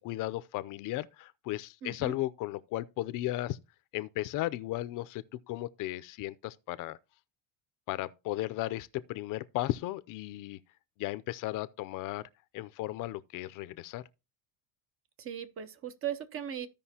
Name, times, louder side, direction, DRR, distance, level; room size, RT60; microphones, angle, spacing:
voice 1, 0.0-3.6 3.9-7.0 7.9-10.6 11.0-12.2 12.5-14.0, left 16 dB, 60° left, 0.6 m, -35 dB
voice 2, 1.8-2.1 15.2-16.7, right 9 dB, 35° right, 0.8 m, -38 dB
15.0 x 5.2 x 2.8 m
cardioid pair, 140°, 36 cm